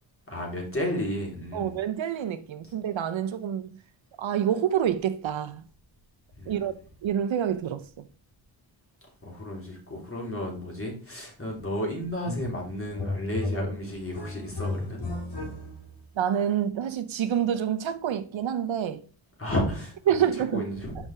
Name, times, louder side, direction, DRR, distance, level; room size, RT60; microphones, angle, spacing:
voice 1, 0.3-1.8 2.6-2.7 6.4-6.7 9.2-15.1 19.4-20.0 20.3-21.0, equal, 25° left, 3.4 m, -32 dB
voice 2, 1.5-3.8 4.2-5.6 6.5-6.7 7.0-8.1 16.2-19.0 20.1-20.6, right 9 dB, 70° right, 0.7 m, -27 dB
sound 1, 12.3-12.6 12.9-16.0, left 2 dB, 55° left, 3.0 m, -34 dB
6.0 x 5.3 x 4.8 m
cardioid pair, 70°, 47 cm